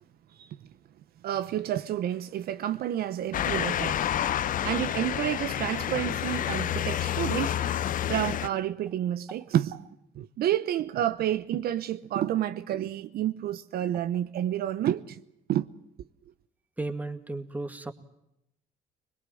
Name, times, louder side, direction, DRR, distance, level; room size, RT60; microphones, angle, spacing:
voice 1, 1.2-4.0 4.6-7.6 8.1-9.9 10.2-15.2 15.5-15.7, right 11 dB, 65° right, 0.9 m, -29 dB
Motor vehicle (road) / Siren, 3.3-8.5, left 11 dB, 55° left, 0.8 m, -29 dB
voice 2, 16.8-17.9, right 2 dB, 10° right, 2.1 m, -34 dB
23.5 x 21.5 x 7.7 m
cardioid pair, 110°, 17 cm